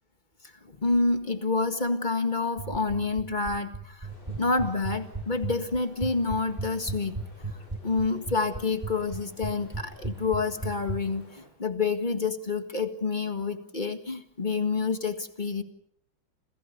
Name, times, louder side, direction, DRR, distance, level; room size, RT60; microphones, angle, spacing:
voice 1, 0.8-7.2 7.8-15.6, left 3 dB, 25° left, 8 dB, 1.7 m, -28 dB
sound 1, 2.6-11.0, right 3 dB, 15° right, 1.5 m, -34 dB
sound 2, 4.0-11.5, equal, 65° left, 7.8 m, -54 dB
29.0 x 27.5 x 5.3 m, 0.65 s
omnidirectional pair, 2.2 m